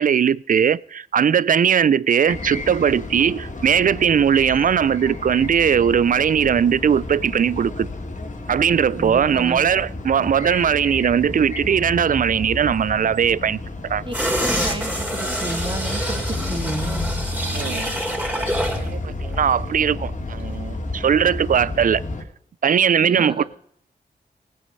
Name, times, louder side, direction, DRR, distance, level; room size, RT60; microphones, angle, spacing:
voice 1, 0.0-7.9 8.5-14.0 17.5-22.0 22.6-23.4, right 8 dB, 55° right, 0.4 m, -19 dB
sound 1, 2.3-22.2, left 2 dB, 50° left, 2.6 m, -31 dB
voice 2, 9.0-9.6 14.0-14.1 14.5-17.1 23.0-23.4, right 2 dB, 30° right, 2.7 m, -31 dB
sound 2, 14.1-18.9 19.2-19.3, equal, 10° right, 3.7 m, -26 dB
18.5 x 8.4 x 5.4 m
cardioid pair, 70°, 17 cm